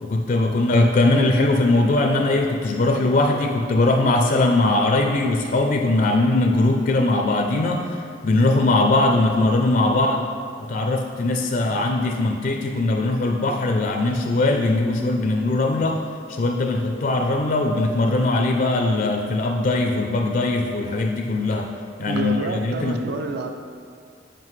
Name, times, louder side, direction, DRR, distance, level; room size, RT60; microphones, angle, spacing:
voice 1, 0.0-10.2 10.7-16.0 16.3-21.7 22.0-23.0, left 2 dB, 45° left, 3 dB, 0.4 m, -20 dB
voice 2, 22.0-23.5, right 3 dB, 60° right, 5 dB, 0.4 m, -28 dB
7.5 x 5.2 x 3.2 m, 2.1 s
head